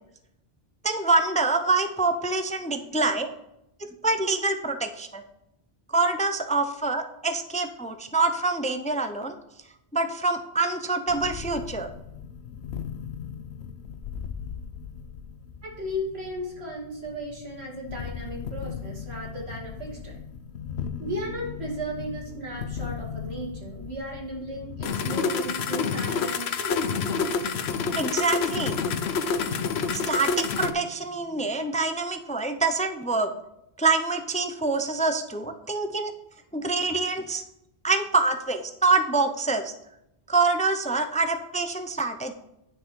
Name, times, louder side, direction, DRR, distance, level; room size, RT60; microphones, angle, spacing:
voice 1, 0.8-3.3 3.8-5.2 5.9-9.4 9.9-11.9 28.0-28.8 29.9-33.3 33.8-36.1 36.5-37.4 37.8-39.7 40.3-42.3, right 3 dB, 10° left, 8 dB, 0.4 m, -25 dB
sound 1, 11.1-30.7, left 5 dB, 90° left, 0.9 m, -31 dB
voice 2, 15.6-20.2 21.0-27.0 35.6-35.8, equal, 90° right, -3 dB, 2.7 m, -35 dB
9.6 x 6.3 x 4.5 m, 0.83 s
omnidirectional pair, 1.0 m